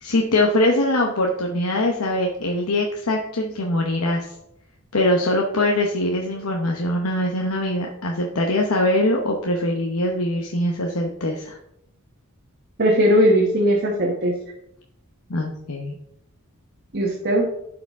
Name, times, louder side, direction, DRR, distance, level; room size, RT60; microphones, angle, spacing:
voice 1, 0.0-4.3 4.9-11.6 15.3-15.9, left 1 dB, 75° left, 0 dB, 0.9 m, -22 dB
voice 2, 12.8-14.3 16.9-17.5, equal, 50° right, -2 dB, 1.1 m, -18 dB
11.5 x 4.8 x 3.6 m, 0.80 s
head